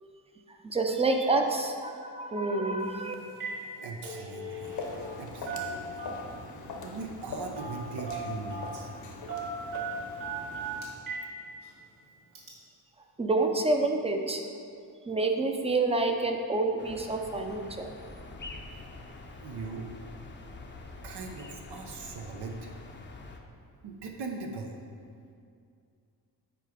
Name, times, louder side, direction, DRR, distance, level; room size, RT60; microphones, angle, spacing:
voice 1, 0.6-3.1 13.2-14.4 15.1-17.9, right 3 dB, 15° right, 3 dB, 0.6 m, -28 dB
Telephone, 2.8-3.0 3.3-3.6 3.9-5.2 5.5-6.4 7.6-7.8 8.1-8.8 9.3-11.3 11.6-11.7 12.3-12.5, right 3 dB, 50° right, 2.0 m, -37 dB
voice 2, 3.8-4.8 5.2-5.9 6.8-8.9 19.4-19.9 21.0-22.7 23.8-24.8, right 4 dB, 80° right, 1 dB, 0.9 m, -40 dB
Walk footsteps, 4.4-11.0, left 2 dB, 65° left, 1.2 m, -42 dB
sound 1, 16.8-23.4, left 2 dB, 30° left, 0.7 m, -46 dB
8.8 x 4.6 x 5.1 m, 2.4 s
wide cardioid pair, 130°, 40 cm